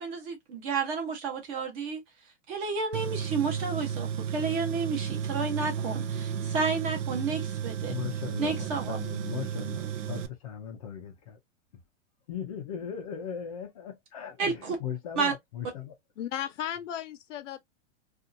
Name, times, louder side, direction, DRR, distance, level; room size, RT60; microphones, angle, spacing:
voice 1, 0.0-2.0 2.5-7.9 8.4-9.0 14.4-14.8 15.2-15.3, right 5 dB, 30° right, 0.9 m, -31 dB
Tools, 2.9-10.3, right 8 dB, 85° right, 0.6 m, -33 dB
voice 2, 7.8-11.4 12.3-15.9, left 8 dB, 30° left, 0.5 m, -38 dB
voice 3, 16.2-17.6, left 10 dB, 90° left, 0.8 m, -35 dB
2.7 x 2.4 x 2.5 m
supercardioid pair, 170°, 36 cm